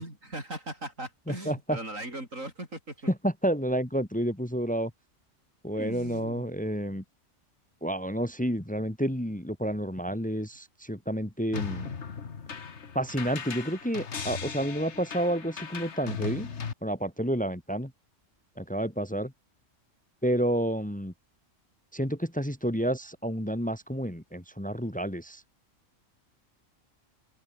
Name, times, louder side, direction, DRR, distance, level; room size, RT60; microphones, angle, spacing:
voice 1, 0.0-2.9 5.7-6.5, right 1 dB, 85° right, 8.3 m, -39 dB
voice 2, 1.3-1.8 3.1-4.9 5.6-7.0 7.8-11.9 12.9-16.5 16.8-17.9 18.6-19.3 20.2-21.1 21.9-25.4, equal, 5° left, 1.9 m, -30 dB
sound 1, 11.5-16.7, left 6 dB, 60° left, 1.8 m, -37 dB
omnidirectional pair, 1.3 m